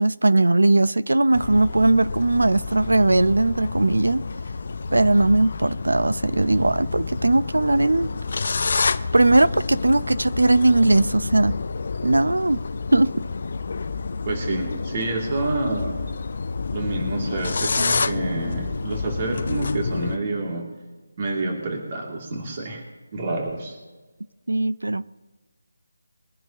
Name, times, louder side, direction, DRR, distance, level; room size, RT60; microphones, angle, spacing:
voice 1, 0.0-4.2 4.9-8.1 9.1-11.5 12.0-12.6 12.9-13.2 24.5-25.1, right 2 dB, 90° right, 0.7 m, -19 dB
sound 1, 1.3-20.2, left 4 dB, 50° left, 0.6 m, -29 dB
voice 2, 14.3-16.0 16.7-20.7 21.2-22.8 23.1-23.8, right 2 dB, 35° right, 3.0 m, -28 dB
22.5 x 10.5 x 3.1 m
figure-of-eight pair, 165°, 0 cm